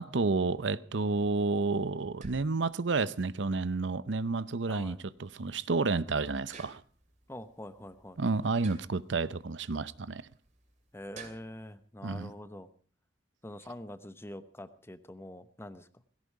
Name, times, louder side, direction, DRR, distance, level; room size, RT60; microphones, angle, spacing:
voice 1, 0.0-6.8 8.2-10.2 12.0-12.3, right 3 dB, 75° right, 0.7 m, -30 dB
sound 1, 1.0-11.8, right 4 dB, 40° right, 2.8 m, -55 dB
voice 2, 4.7-5.0 7.3-8.2 10.9-12.7 13.4-15.9, left 1 dB, 15° left, 0.9 m, -45 dB
17.5 x 16.5 x 4.8 m
head